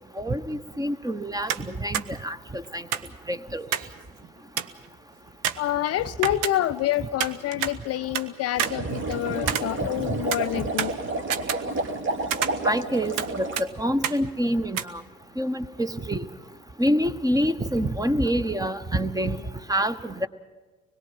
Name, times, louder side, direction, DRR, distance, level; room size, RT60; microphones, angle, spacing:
voice 1, 0.2-2.8 3.3-3.7 10.2-10.3 10.5-10.6 12.6-15.0 15.4-16.3 16.8-19.4 19.7-20.3, equal, 10° right, 14 dB, 1.1 m, -27 dB
sound 1, 1.5-1.7 1.9-2.1 2.9-4.0 4.2-4.3 4.6-4.9 5.4-6.9 7.2-8.3 8.6-10.0 10.3-12.0 12.3-13.3 13.6-13.7 14.0-14.2 14.7-14.8, right 9 dB, 55° right, 1.1 m, -29 dB
voice 2, 5.6-11.0, left 13 dB, 40° left, 11 dB, 0.6 m, -27 dB
sound 2, 8.6-13.6, right 2 dB, 30° right, 1.8 m, -30 dB
25.0 x 21.5 x 5.9 m, 1.3 s
figure-of-eight pair, 55°, 39 cm